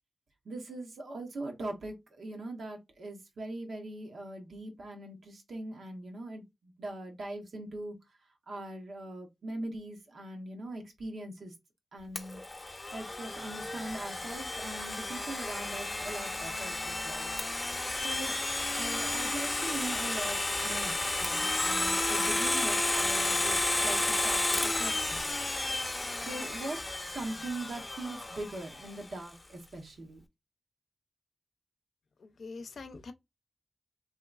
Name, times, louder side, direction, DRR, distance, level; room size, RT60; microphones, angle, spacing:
voice 1, 0.4-8.0 8.5-11.5 11.9-12.4 12.9-17.3 18.0-18.4 18.7-25.3 26.2-30.2, right 2 dB, 90° right, 1.0 m, -41 dB
Domestic sounds home sounds, 12.2-28.9, left 2 dB, 25° left, 0.6 m, -32 dB
voice 2, 32.2-33.1, left 4 dB, 85° left, 0.5 m, -44 dB
3.0 x 3.0 x 2.3 m
wide cardioid pair, 90°, 0 cm